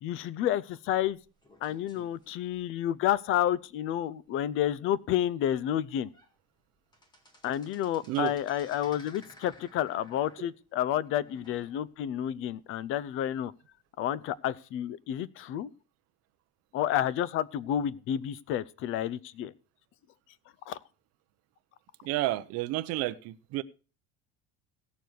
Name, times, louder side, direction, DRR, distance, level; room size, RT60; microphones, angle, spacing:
voice 1, 0.0-1.2 1.6-6.1 7.4-13.5 14.0-15.7 16.7-19.5 20.7-20.8, left 11 dB, 45° left, 0.6 m, -30 dB
sound 1, 1.0-3.2 3.7-3.8 4.2-4.3 4.8-4.9 5.6-5.7 6.0-6.3 6.6-12.1 12.5-12.6 13.4-13.5, left 1 dB, 15° left, 1.9 m, -56 dB
voice 2, 22.0-23.6, right 16 dB, 50° right, 0.7 m, -31 dB
17.0 x 7.0 x 4.6 m
cardioid pair, 170°, 30 cm